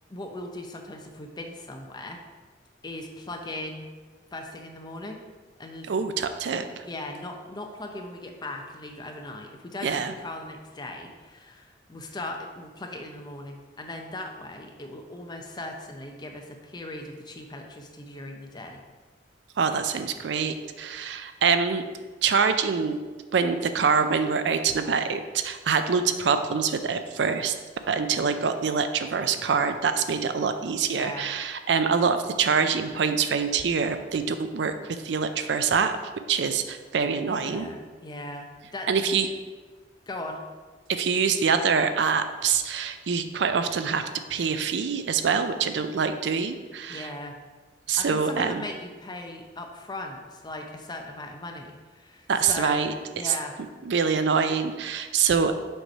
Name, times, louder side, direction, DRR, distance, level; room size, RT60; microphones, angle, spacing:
voice 1, 0.1-2.2 2.8-3.9 4.3-5.2 5.6-5.9 6.8-18.8 30.9-31.3 37.3-39.2 40.1-40.4 46.9-47.4 48.0-52.8 53.1-53.6, left 2 dB, 25° left, 3 dB, 0.6 m, -38 dB
voice 2, 5.9-6.8 9.8-10.1 19.6-21.8 22.2-23.0 23.3-27.6 27.9-36.0 36.3-37.7 38.9-39.3 40.9-47.1 47.9-48.6 52.3-52.9 53.2-53.3 53.8-55.6, right 6 dB, 75° right, 9 dB, 0.4 m, -25 dB
6.4 x 3.1 x 5.3 m, 1.4 s
head